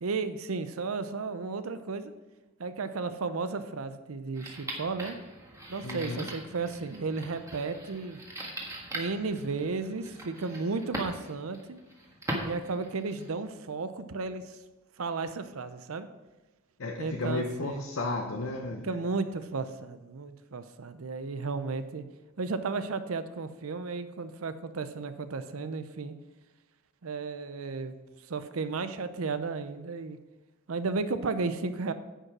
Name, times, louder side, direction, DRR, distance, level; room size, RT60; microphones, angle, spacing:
voice 1, 0.0-2.1 2.6-5.2 5.7-8.2 8.9-11.8 12.4-14.6 15.0-16.1 17.0-17.8 18.8-22.0 22.4-26.1 27.0-27.9 28.3-30.2 30.7-31.9, right 4 dB, 85° right, 11 dB, 0.6 m, -34 dB
sound 1, 4.3-13.4, right 1 dB, 15° right, 1.5 m, -41 dB
voice 2, 5.8-6.3 16.8-18.9, left 2 dB, 70° left, 2 dB, 0.8 m, -33 dB
9.9 x 5.5 x 6.0 m, 1.2 s
head